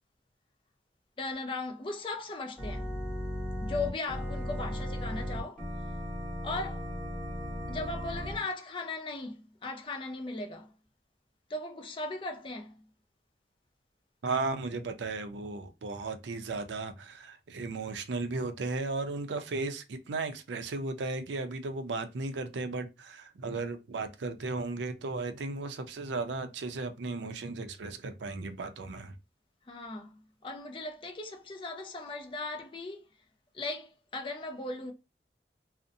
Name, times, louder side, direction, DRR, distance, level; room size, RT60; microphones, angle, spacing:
voice 1, 1.2-2.9 3.6-5.6 6.4-6.9 7.7-10.7 11.5-12.7 29.7-33.0 33.5-34.9, left 3 dB, 30° left, 0.4 m, -37 dB
Organ, 2.6-8.4, equal, 5° left, 1.1 m, -36 dB
voice 2, 14.2-29.1, right 3 dB, 80° right, 0.4 m, -35 dB
2.6 x 2.0 x 2.5 m
head